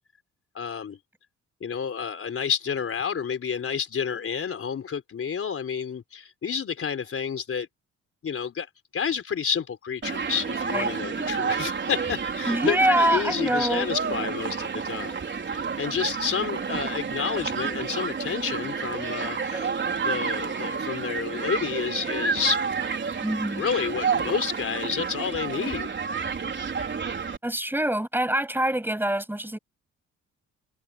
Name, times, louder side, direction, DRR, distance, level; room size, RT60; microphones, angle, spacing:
voice 1, 0.5-1.0 1.6-7.7 8.2-8.7 8.9-15.2 15.5-19.7 20.0-22.6 23.6-26.0, left 7 dB, 50° left, 4.2 m, -30 dB
Human group actions, 10.0-27.4, right 5 dB, 40° right, 4.5 m, -30 dB
voice 2, 12.5-13.9 19.5-19.7 23.2-23.6 27.4-29.6, right 1 dB, 5° right, 7.3 m, -25 dB
cardioid pair, 90°, 30 cm